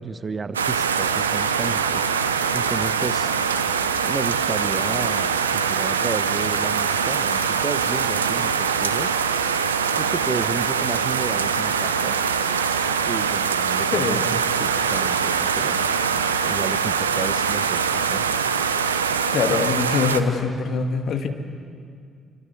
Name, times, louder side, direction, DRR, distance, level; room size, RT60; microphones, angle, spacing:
voice 1, 0.0-2.0 2.5-3.3 4.0-9.2 10.0-12.2 13.1-14.2 14.6-15.8 16.5-18.2, right 4 dB, 35° right, 13 dB, 1.2 m, -32 dB
sound 1, 0.5-20.2, right 6 dB, 85° right, 0.8 m, -23 dB
voice 2, 13.9-14.2 19.3-21.3, left 5 dB, 55° left, 6 dB, 2.2 m, -23 dB
28.0 x 25.0 x 8.0 m, 2.3 s
figure-of-eight pair, 45°, 0 cm